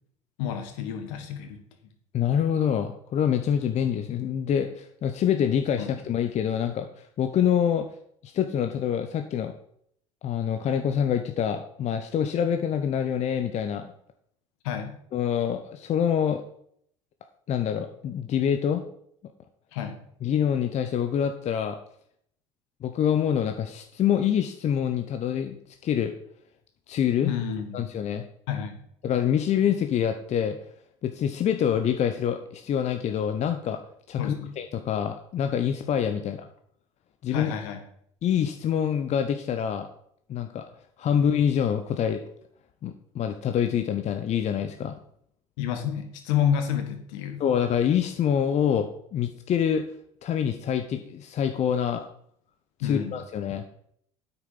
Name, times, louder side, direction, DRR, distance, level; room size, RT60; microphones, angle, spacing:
voice 1, 0.4-1.9 5.8-5.9 14.6-15.0 19.7-20.0 27.2-27.8 28.5-28.8 34.2-34.5 37.3-37.8 45.6-47.4 52.8-53.1, left 9 dB, 65° left, 6 dB, 1.6 m, -29 dB
voice 2, 2.1-7.9 8.2-9.5 10.2-13.9 15.1-16.4 17.5-18.8 20.2-21.8 22.8-25.6 25.8-26.1 26.9-27.3 27.7-28.2 29.0-30.6 31.0-33.8 34.1-36.5 37.2-37.5 38.2-39.9 40.3-40.6 41.0-42.2 42.8-44.9 47.4-49.8 50.2-52.0 52.8-53.6, left 8 dB, 40° left, 7 dB, 0.9 m, -26 dB
9.1 x 6.9 x 5.5 m, 0.68 s
figure-of-eight pair, 65°, 17 cm